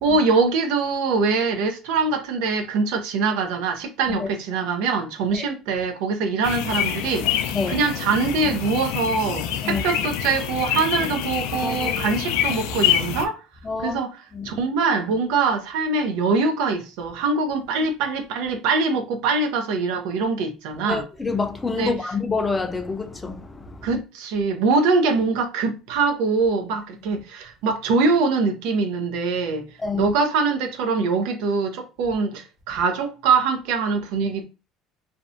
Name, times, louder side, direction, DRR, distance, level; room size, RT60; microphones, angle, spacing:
voice 1, 0.0-7.3 7.7-13.4 13.8-14.2 14.4-21.0 21.8-21.9 23.8-29.6 29.9-34.4, right 4 dB, 80° right, 0.5 m, -23 dB
sound 1, 6.4-13.3, left 9 dB, 85° left, 0.3 m, -26 dB
voice 2, 11.6-12.1 13.6-14.0 14.3-14.6 20.8-23.9 29.8-30.1, left 4 dB, 20° left, 0.5 m, -27 dB
2.6 x 2.1 x 2.5 m
supercardioid pair, 100°, 0 cm